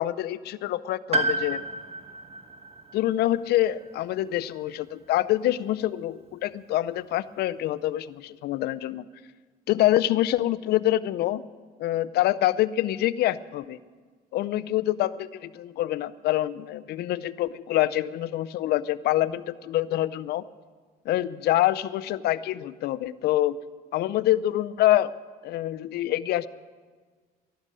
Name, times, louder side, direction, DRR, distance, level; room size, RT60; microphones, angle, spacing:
voice 1, 0.0-1.6 2.9-9.1 9.7-11.4 11.8-13.8 14.3-20.4 21.1-23.6 23.9-25.1 25.4-26.5, left 14 dB, 70° left, 15 dB, 0.6 m, -26 dB
Piano, 1.1-5.0 5.3-5.4 6.5-6.6, right 2 dB, 35° right, 1.3 m, -32 dB
12.5 x 12.0 x 7.6 m, 1.5 s
cardioid pair, 110°, 17 cm